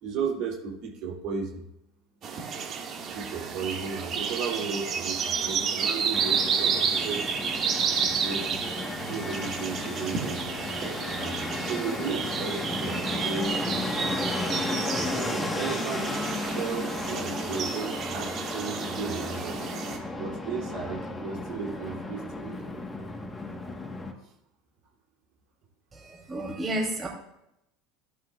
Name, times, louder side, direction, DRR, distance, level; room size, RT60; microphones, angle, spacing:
voice 1, 0.0-1.6 3.1-8.6 9.0-10.4 11.1-14.4 15.0-16.1 16.5-19.8 20.2-22.7 24.2-24.3, right 5 dB, 60° right, -2 dB, 3.1 m, -35 dB
sound 1, 2.2-20.0, right 6 dB, 45° right, 2.1 m, -31 dB
Fixed-wing aircraft airplane, 6.1-24.1, left 2 dB, 15° left, 1.5 m, -34 dB
voice 2, 25.9-27.1, right 1 dB, 25° right, 0 dB, 3.3 m, -31 dB
15.5 x 9.4 x 2.5 m, 0.85 s
hypercardioid pair, 95°, 0 cm